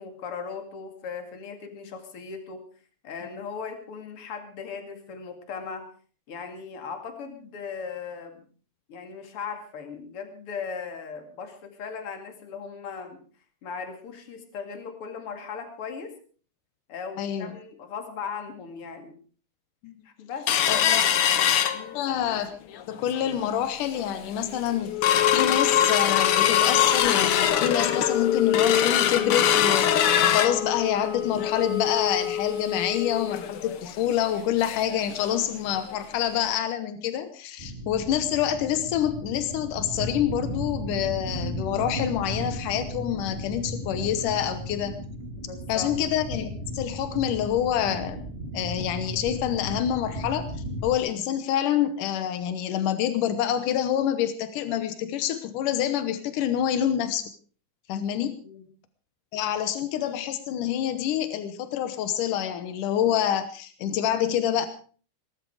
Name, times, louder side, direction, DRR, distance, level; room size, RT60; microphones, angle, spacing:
voice 1, 0.0-2.6 3.0-5.9 6.3-8.4 8.9-13.2 13.6-16.2 16.9-19.2 20.0-21.1 21.7-22.0 37.8-37.9 45.4-45.9 58.4-58.6, left 5 dB, 45° left, 6 dB, 3.1 m, -38 dB
sound 1, 20.5-22.3 22.7-22.8 23.2-23.5 24.0-24.1 24.5-35.0 35.3-35.4 35.8-36.0 36.5-36.6, left 10 dB, 65° left, 1.5 m, -23 dB
voice 2, 20.7-21.0 21.9-45.0 45.7-48.3 48.5-50.5 50.8-57.2 57.9-58.3 59.3-64.7, left 10 dB, 90° left, 11 dB, 2.6 m, -27 dB
sound 2, 37.6-51.0, equal, 25° right, 1.5 m, -35 dB
19.5 x 12.5 x 4.9 m, 0.41 s
omnidirectional pair, 3.6 m